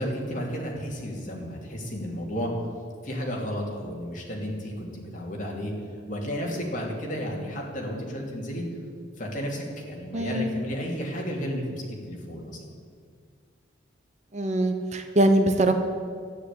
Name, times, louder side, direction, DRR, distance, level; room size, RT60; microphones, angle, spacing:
voice 1, 0.0-2.5 3.0-5.7 6.1-8.6 9.2-12.6, equal, 40° left, -2 dB, 3.0 m, -32 dB
voice 2, 10.1-10.5 14.3-15.7, right 1 dB, 35° right, 7 dB, 0.9 m, -22 dB
12.5 x 10.0 x 8.5 m, 2.1 s
head